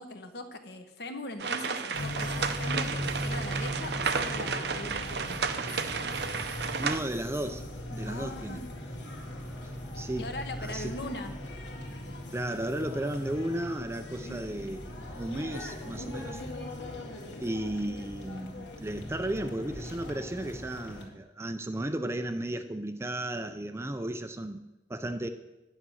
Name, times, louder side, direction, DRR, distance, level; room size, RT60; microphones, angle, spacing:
voice 1, 0.0-5.4 8.0-8.7 10.2-11.3, left 1 dB, 60° left, 7 dB, 1.2 m, -40 dB
sound 1, 1.4-7.0, right 5 dB, 60° right, 0.7 m, -32 dB
sound 2, 1.9-21.0, left 1 dB, 80° left, 2.2 m, -39 dB
voice 2, 6.8-8.6 10.0-10.3 10.6-10.9 12.3-14.9 15.1-16.4 17.4-24.6 24.9-25.3, right 1 dB, 15° right, 9 dB, 0.4 m, -34 dB
9.8 x 9.5 x 6.3 m, 1.0 s
head